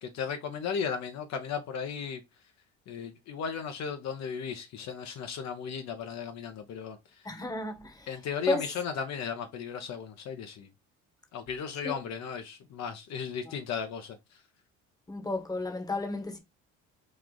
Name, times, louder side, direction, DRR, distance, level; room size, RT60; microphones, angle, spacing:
voice 1, 0.0-2.2 2.9-7.3 8.1-10.7 11.3-14.4, left 6 dB, 60° left, 0.7 m, -35 dB
voice 2, 7.2-8.1 8.5-8.6 11.8-11.9 15.1-16.4, left 2 dB, 10° left, 1.0 m, -32 dB
3.1 x 2.4 x 3.8 m
supercardioid pair, 85°, 31 cm